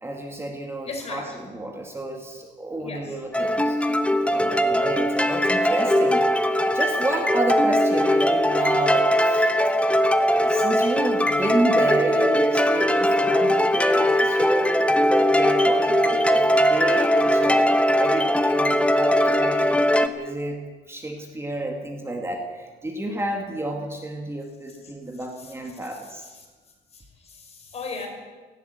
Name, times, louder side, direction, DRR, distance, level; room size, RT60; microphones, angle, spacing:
voice 1, 0.0-3.8 4.2-6.5 6.7-9.5 9.8-20.6 20.9-26.3, right 1 dB, 15° right, 3 dB, 2.1 m, -30 dB
voice 2, 0.9-1.4 2.8-3.2 26.4-26.5 26.9-28.1, left 3 dB, 35° left, 2 dB, 5.2 m, -36 dB
sound 1, 3.3-20.1, equal, 5° left, 1.0 m, -20 dB
18.0 x 16.0 x 9.4 m, 1.4 s
cardioid pair, 150°, 18 cm